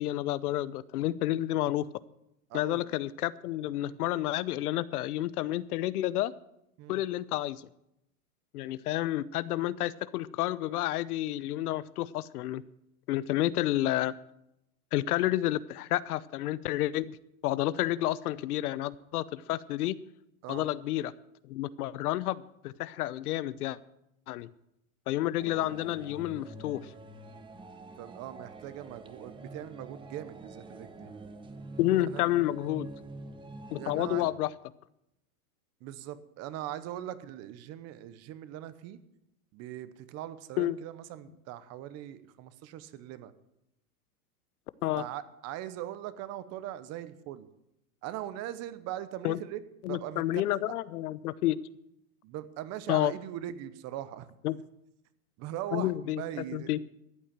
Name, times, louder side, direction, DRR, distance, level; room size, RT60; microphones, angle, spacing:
voice 1, 0.0-1.9 2.5-6.3 6.9-7.6 8.5-12.6 13.1-14.1 14.9-17.2 17.4-19.9 20.5-21.1 21.5-23.8 24.3-24.5 25.1-26.9 31.8-32.9 33.7-34.5 40.6-40.8 44.8-45.0 49.2-49.4 49.8-51.6 52.9-53.1 54.4-54.6 55.7-56.2 56.5-56.8, left 14 dB, 75° left, 18 dB, 0.8 m, -30 dB
voice 2, 2.5-2.9 3.8-4.0 6.8-7.0 17.8-17.9 20.4-20.7 28.0-31.1 32.1-32.2 33.7-34.3 35.8-39.0 39.5-43.3 44.9-47.5 48.0-49.6 49.9-50.7 52.2-54.3 55.4-56.8, right 12 dB, 35° right, 14 dB, 0.9 m, -40 dB
sound 1, 25.4-34.3, right 2 dB, 10° right, 0.8 m, -46 dB
14.0 x 8.5 x 7.4 m, 0.83 s
supercardioid pair, 140°, 46 cm